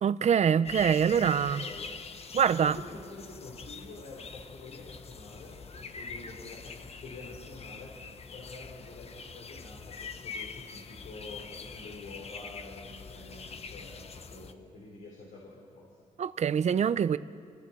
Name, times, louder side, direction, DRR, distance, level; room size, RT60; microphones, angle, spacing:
voice 1, 0.0-1.6 2.3-2.8 16.2-17.2, right 8 dB, 55° right, 0.7 m, -24 dB
sound 1, 0.6-14.5, left 5 dB, 50° left, 1.1 m, -44 dB
voice 2, 1.0-2.0 2.6-7.9 8.3-15.9, left 2 dB, 80° left, 4.6 m, -47 dB
29.5 x 24.0 x 4.6 m
cardioid pair, 105°, 14 cm